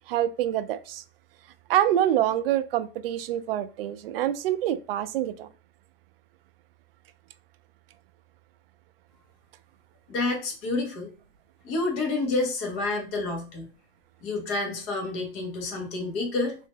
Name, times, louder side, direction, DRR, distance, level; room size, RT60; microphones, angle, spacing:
voice 1, 0.1-1.0 1.7-5.5, right 11 dB, 65° right, 0.5 m, -26 dB
voice 2, 10.1-11.1 11.6-13.7 14.2-16.6, left 3 dB, 40° left, 1.2 m, -29 dB
2.7 x 2.6 x 3.7 m
hypercardioid pair, 135°, 31 cm